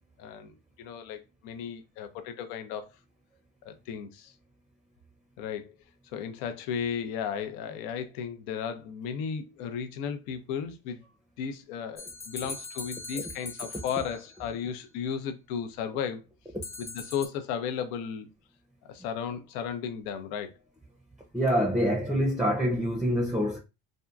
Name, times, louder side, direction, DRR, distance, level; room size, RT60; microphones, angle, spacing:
voice 1, 0.2-2.9 3.6-4.3 5.4-5.8 6.1-11.0 11.4-16.2 16.8-18.3 18.9-20.5, left 7 dB, 80° left, 0.6 m, -35 dB
sound 1, 12.0-14.5 16.6-17.3, left 3 dB, 30° left, 0.8 m, -41 dB
voice 2, 21.3-23.6, equal, ahead, 0.5 m, -25 dB
2.7 x 2.4 x 2.3 m
supercardioid pair, 75°, 44 cm